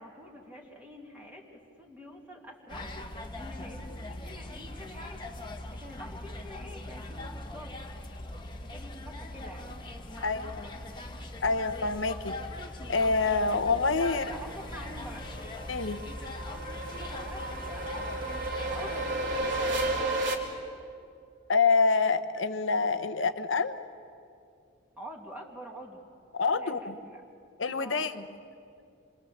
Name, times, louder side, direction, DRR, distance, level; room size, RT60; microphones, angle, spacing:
voice 1, 0.0-2.9 3.3-5.2 5.7-7.7 8.5-11.2 13.9-15.3 16.9-18.3 18.7-19.8 25.0-26.1 26.5-27.3 27.8-28.1, equal, 10° right, -1 dB, 2.2 m, -47 dB
sound 1, 2.7-20.0, left 1 dB, 25° left, 1.4 m, -41 dB
voice 2, 10.2-10.6 11.4-12.3 12.9-14.2 15.7-16.0 21.5-23.8 26.3-26.9 27.6-28.2, left 4 dB, 75° left, 10 dB, 1.0 m, -26 dB
sound 2, 13.8-20.3, right 2 dB, 60° right, 2.8 m, -33 dB
27.0 x 22.5 x 7.4 m, 2.4 s
head